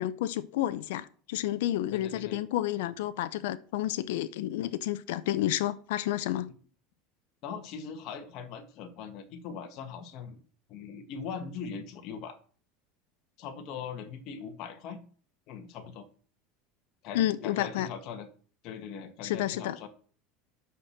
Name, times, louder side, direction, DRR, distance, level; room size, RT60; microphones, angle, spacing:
voice 1, 0.0-6.5 17.1-17.9 19.2-19.8, left 13 dB, 85° left, 0.7 m, -30 dB
voice 2, 1.9-2.4 7.4-10.4 10.7-12.4 13.4-15.0 15.5-16.1 17.0-18.3 18.6-19.9, left 6 dB, 55° left, 1.6 m, -40 dB
9.2 x 6.0 x 6.5 m
supercardioid pair, 130°, 0 cm